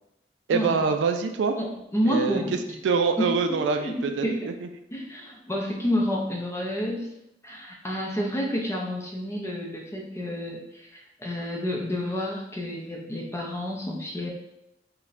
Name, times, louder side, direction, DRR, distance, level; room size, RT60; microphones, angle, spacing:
voice 1, 0.5-1.6 2.1-2.6 2.8-4.7, right 5 dB, 80° right, 7 dB, 0.3 m, -25 dB
voice 2, 1.6-2.8 3.2-4.0 4.2-4.5 4.9-7.1 7.4-14.3, equal, 15° left, -1 dB, 0.5 m, -30 dB
4.1 x 2.1 x 2.5 m, 0.87 s
head